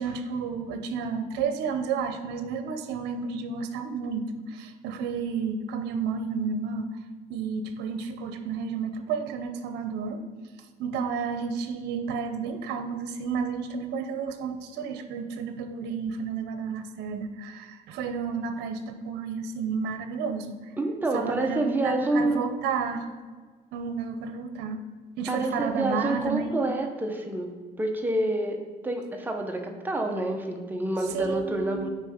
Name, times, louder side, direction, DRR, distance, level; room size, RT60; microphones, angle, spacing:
voice 1, 0.0-6.9 7.3-10.2 10.8-20.5 21.1-23.1 23.7-24.9 25.2-26.5 31.1-31.9, right 5 dB, 85° right, 8 dB, 0.7 m, -31 dB
voice 2, 20.8-22.4 25.3-27.5 27.8-28.6 28.8-31.9, right 2 dB, 10° right, 3 dB, 0.8 m, -28 dB
9.3 x 3.3 x 5.0 m, 1.5 s
cardioid pair, 110°, 17 cm